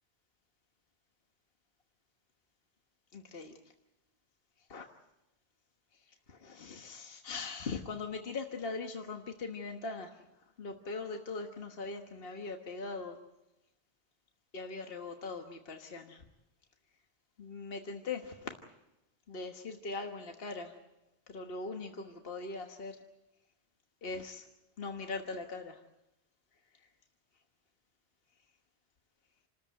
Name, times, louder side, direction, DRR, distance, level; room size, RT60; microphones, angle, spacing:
voice 1, 3.1-3.5 4.7-4.9 5.9-13.2 14.5-16.2 17.4-18.5 19.3-20.8 21.3-23.0 24.0-24.5 24.8-25.8 26.7-26.9, left 3 dB, 60° left, 4 dB, 1.5 m, -41 dB
28.5 x 13.5 x 9.2 m, 0.94 s
omnidirectional pair, 1.1 m